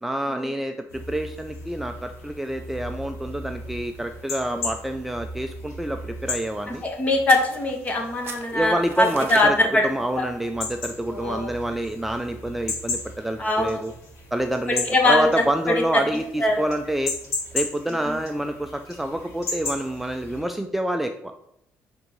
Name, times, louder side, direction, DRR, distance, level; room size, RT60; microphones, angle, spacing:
voice 1, 0.0-6.8 8.5-9.5 9.8-13.9 14.3-17.1 17.5-21.3, right 1 dB, 5° right, 5 dB, 0.3 m, -27 dB
sound 1, 0.9-20.4, left 2 dB, 65° left, 2.2 m, -36 dB
voice 2, 6.7-9.9 10.2-10.3 11.1-11.5 13.4-13.8 14.8-15.3 15.9-16.0 16.4-16.5 18.1-18.2, left 2 dB, 30° left, 2 dB, 1.4 m, -22 dB
sound 2, 7.3-8.0 8.2-9.5, right 7 dB, 50° right, 0.7 m, -39 dB
10.5 x 3.6 x 3.1 m, 0.78 s
cardioid pair, 125°, 5 cm